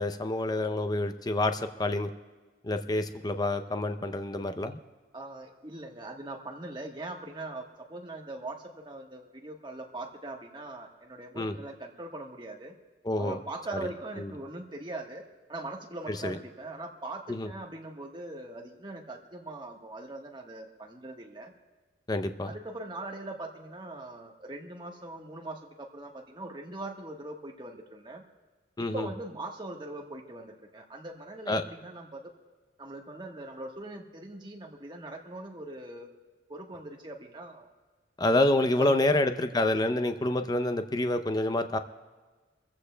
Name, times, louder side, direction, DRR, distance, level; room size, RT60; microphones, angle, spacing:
voice 1, 0.0-2.1 2.6-4.8 11.4-11.6 13.0-13.4 14.2-14.3 16.1-16.4 17.3-17.5 22.1-22.5 28.8-29.1 31.5-31.6 38.2-41.8, left 2 dB, 20° left, 8 dB, 0.6 m, -27 dB
voice 2, 5.1-12.7 13.2-15.2 15.5-21.5 22.5-28.2 28.8-32.3 32.8-36.1 36.5-37.7 38.8-39.1, right 2 dB, 25° right, 2 dB, 1.3 m, -41 dB
28.5 x 15.0 x 2.2 m, 1.3 s
head